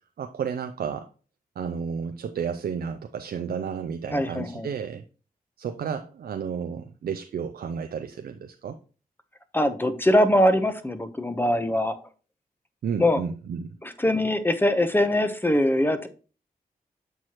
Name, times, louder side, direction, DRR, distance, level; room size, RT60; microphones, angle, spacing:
voice 1, 0.2-1.1 1.6-5.0 5.6-8.8 12.8-13.7, right 7 dB, 85° right, 7 dB, 0.4 m, -32 dB
voice 2, 4.1-4.7 9.5-12.0 13.0-13.2 13.8-16.1, left 1 dB, 15° left, 10 dB, 0.8 m, -22 dB
7.5 x 4.6 x 2.9 m, 0.36 s
cardioid pair, 55°, 16 cm